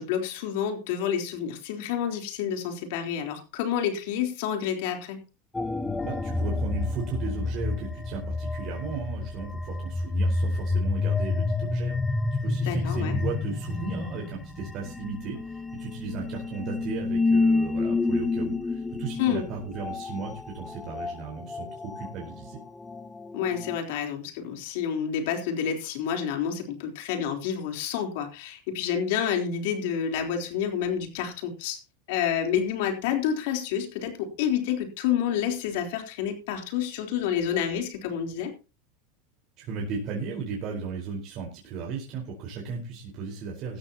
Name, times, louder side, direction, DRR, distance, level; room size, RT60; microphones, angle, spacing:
voice 1, 0.0-5.2 12.7-13.2 19.2-19.5 23.3-31.8 32.1-38.5, left 8 dB, 70° left, 4 dB, 3.7 m, -29 dB
sound 1, 5.5-23.8, left 3 dB, 10° left, 1.1 m, -29 dB
voice 2, 6.0-22.6 39.6-43.8, right 5 dB, 50° right, -1 dB, 4.5 m, -35 dB
17.5 x 13.0 x 2.9 m, 0.31 s
supercardioid pair, 115°, 0 cm